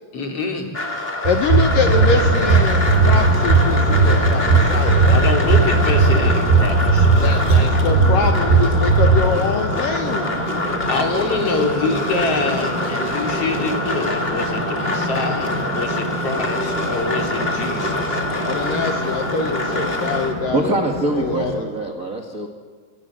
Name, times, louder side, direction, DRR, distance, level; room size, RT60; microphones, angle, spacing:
voice 1, 0.1-0.7 5.1-7.3 10.9-18.2, left 3 dB, 35° left, 2 dB, 3.9 m, -25 dB
sound 1, 0.7-20.3, left 2 dB, 20° left, 1.8 m, -25 dB
voice 2, 1.2-5.3 7.2-10.4 18.3-20.9 21.1-21.6, left 5 dB, 65° left, 5 dB, 2.5 m, -24 dB
sound 2, 1.3-9.2, right 4 dB, 75° right, 7.7 m, -15 dB
sound 3, 1.6-21.6, right 1 dB, 30° right, 4.5 m, -29 dB
voice 3, 20.5-22.5, right 2 dB, 45° right, 2 dB, 1.1 m, -23 dB
27.0 x 25.5 x 7.7 m, 1.5 s
omnidirectional pair, 4.9 m